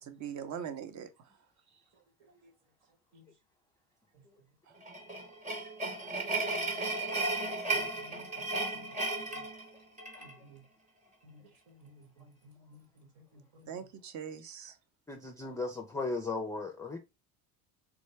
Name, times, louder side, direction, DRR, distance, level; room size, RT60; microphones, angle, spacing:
voice 1, 0.0-1.4 4.7-4.8 13.7-14.8, right 8 dB, 45° right, 0.7 m, -42 dB
voice 2, 2.2-2.5 3.1-3.3 4.1-4.2 7.7-8.9 9.3-9.5 10.2-10.6 11.2-13.7, equal, 75° right, 1.4 m, -58 dB
sound 1, 4.8-10.3, right 2 dB, 20° right, 0.9 m, -34 dB
voice 3, 15.1-17.0, left 3 dB, 10° left, 0.4 m, -36 dB
3.5 x 2.1 x 3.2 m
supercardioid pair, 90°, 40 cm